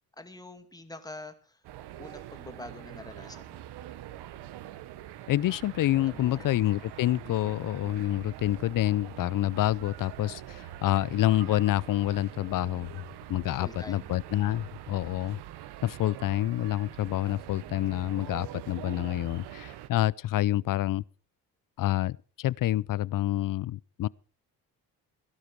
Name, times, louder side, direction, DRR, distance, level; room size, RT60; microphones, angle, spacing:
voice 1, 0.2-1.6 2.0-3.6 6.1-6.6 13.4-14.2, left 2 dB, 10° left, 2.4 m, -45 dB
sound 1, 1.6-19.9, right 13 dB, 75° right, 1.2 m, -44 dB
voice 2, 5.3-13.0 13.3-15.4 15.8-21.0 21.8-24.1, left 14 dB, 55° left, 0.6 m, -28 dB
17.0 x 11.5 x 4.7 m
cardioid pair, 85°, 40 cm